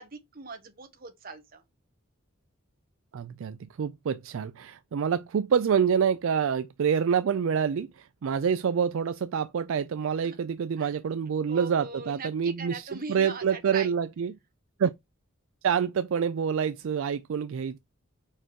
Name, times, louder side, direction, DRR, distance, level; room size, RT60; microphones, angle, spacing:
voice 1, 0.0-1.6 10.2-10.3 10.8-10.9 11.5-13.9, right 4 dB, 45° right, 1.2 m, -40 dB
voice 2, 3.1-14.3 14.8-14.9 15.6-17.8, right 7 dB, 65° right, 0.4 m, -27 dB
4.9 x 4.5 x 4.6 m
head